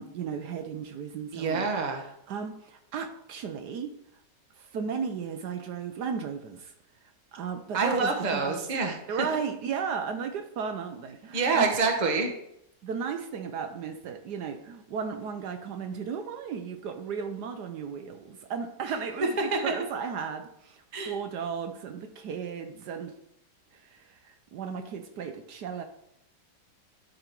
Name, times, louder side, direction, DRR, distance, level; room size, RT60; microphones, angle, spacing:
voice 1, 0.0-1.7 2.3-3.9 4.6-6.7 7.3-8.6 9.1-11.7 12.8-23.1 23.7-25.8, right 6 dB, 70° right, 7 dB, 1.2 m, -35 dB
voice 2, 1.3-2.0 7.7-9.0 11.3-12.3 19.5-19.6 20.9-21.1, right 4 dB, 30° right, 3 dB, 1.0 m, -26 dB
11.5 x 4.0 x 4.5 m, 0.78 s
omnidirectional pair, 1.9 m